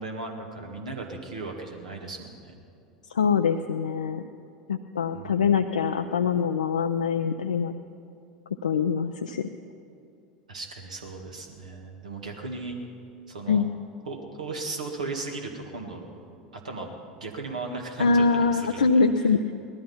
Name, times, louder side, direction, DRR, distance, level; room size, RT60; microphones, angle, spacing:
voice 1, 0.0-2.5 5.1-5.5 10.5-12.8 13.3-13.7 14.1-16.1 16.5-19.3, right 3 dB, 80° right, 1 dB, 1.9 m, -37 dB
voice 2, 3.1-4.2 4.7-7.7 8.6-9.5 13.5-13.7 18.0-19.4, left 5 dB, 80° left, 6 dB, 0.5 m, -23 dB
18.0 x 13.0 x 5.6 m, 2.6 s
figure-of-eight pair, 80°, 4 cm